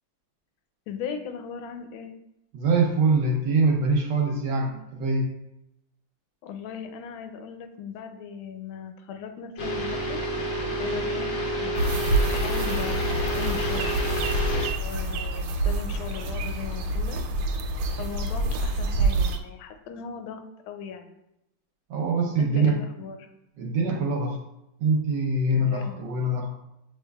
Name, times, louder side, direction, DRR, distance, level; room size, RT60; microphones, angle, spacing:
voice 1, 0.9-2.1 6.4-10.2 10.8-13.9 14.8-17.2 18.0-21.2 22.4-23.3 25.7-26.1, left 7 dB, 80° left, 6 dB, 1.4 m, -38 dB
voice 2, 2.5-5.3 21.9-22.8 23.6-24.4 24.8-26.5, right 3 dB, 70° right, 1 dB, 1.1 m, -24 dB
sound 1, 9.6-14.7, equal, 60° left, 0.8 m, -29 dB
sound 2, 11.8-19.4, right 2 dB, 85° right, 1.4 m, -27 dB
7.3 x 3.1 x 2.3 m, 0.86 s
omnidirectional pair, 2.2 m